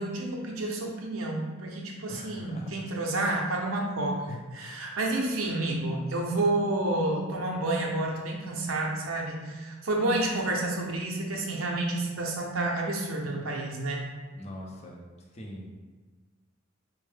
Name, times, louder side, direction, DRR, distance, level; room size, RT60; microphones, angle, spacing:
voice 1, 0.0-14.0, right 2 dB, 70° right, 0 dB, 0.6 m, -30 dB
voice 2, 2.1-2.7 14.3-15.0 15.3-15.8, equal, 30° left, -1 dB, 0.6 m, -42 dB
4.4 x 2.1 x 3.3 m, 1.3 s
head